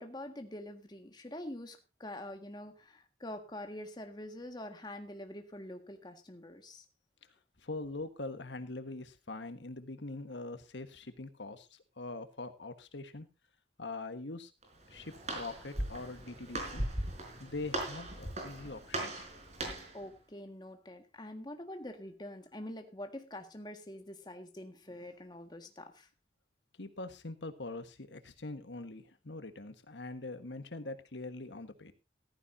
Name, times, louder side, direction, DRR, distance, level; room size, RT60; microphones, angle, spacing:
voice 1, 0.0-6.8 19.9-26.1, left 1 dB, 25° left, 6 dB, 1.7 m, -45 dB
voice 2, 7.6-13.3 13.8-14.5 14.9-16.8 17.4-19.2 26.8-31.9, left 2 dB, 85° left, 9 dB, 1.4 m, -43 dB
Walk footsteps, 14.6-20.0, right 1 dB, 40° right, 4.4 m, -39 dB
15.0 x 14.5 x 2.7 m, 0.28 s
head